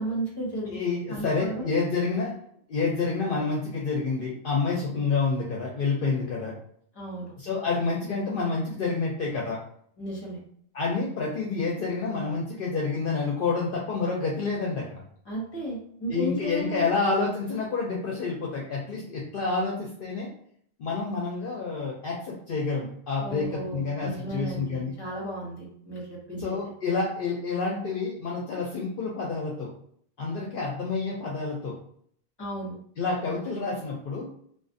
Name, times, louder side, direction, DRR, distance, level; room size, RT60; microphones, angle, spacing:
voice 1, 0.0-0.8 1.1-1.6 6.9-7.3 10.0-10.4 15.2-16.9 23.2-26.6 32.4-32.8, right 1 dB, 25° left, -4 dB, 0.9 m, -34 dB
voice 2, 0.7-2.3 2.7-6.5 7.4-9.6 10.7-14.9 16.1-20.3 20.8-24.9 26.4-29.7 30.2-31.7 33.0-34.3, left 4 dB, 65° left, -3 dB, 0.7 m, -28 dB
2.4 x 2.4 x 2.5 m, 0.63 s
omnidirectional pair, 1.1 m